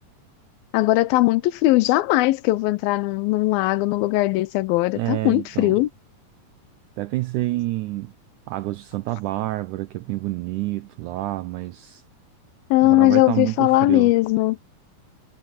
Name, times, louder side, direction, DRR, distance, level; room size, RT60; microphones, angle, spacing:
voice 1, 0.7-5.9 12.7-14.6, left 18 dB, 85° left, 2.5 m, -19 dB
voice 2, 5.0-5.8 7.0-8.1 8.5-12.0 12.8-14.1, right 18 dB, 85° right, 1.8 m, -28 dB
omnidirectional pair, 4.2 m